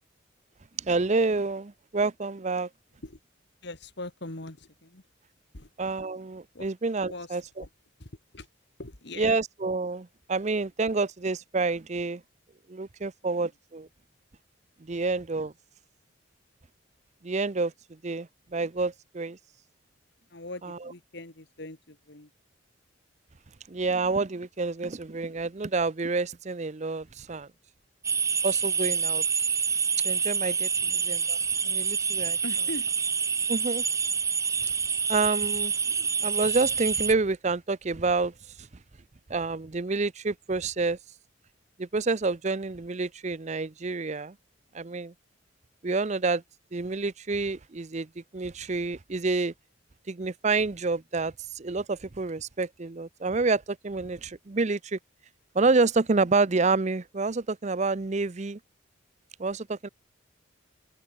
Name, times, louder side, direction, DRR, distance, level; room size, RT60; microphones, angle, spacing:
voice 1, 0.8-2.7 5.8-7.4 9.2-12.2 12.7-13.9 14.8-15.5 17.2-17.7 18.0-19.4 20.6-20.8 23.7-27.5 28.4-29.2 30.0-31.4 31.6-32.4 33.5-33.8 34.6-34.7 35.1-35.7 36.0-38.3 39.3-41.0 41.8-44.3 44.7-45.1 45.8-46.4 46.7-49.5 50.1-55.0 55.5-58.6 59.4-59.9, right 3 dB, 35° right, 0.6 m, -28 dB
voice 2, 3.6-5.0 5.5-5.7 6.5-6.7 7.1-7.7 8.0-8.5 8.8-9.3 14.9-15.0 20.3-22.3 30.8-30.9 32.4-32.9, left 2 dB, 55° left, 2.2 m, -41 dB
sound 1, 28.0-37.1, right 6 dB, 15° right, 1.0 m, -27 dB
head